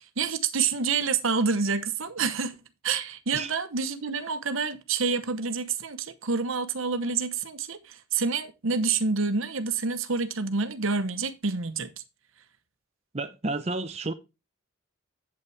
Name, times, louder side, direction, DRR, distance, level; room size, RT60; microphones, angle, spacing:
voice 1, 0.0-2.6 2.8-11.9, right 5 dB, 70° right, 1.0 m, -28 dB
voice 2, 13.1-14.1, right 2 dB, 30° right, 0.6 m, -31 dB
8.4 x 8.2 x 3.3 m
head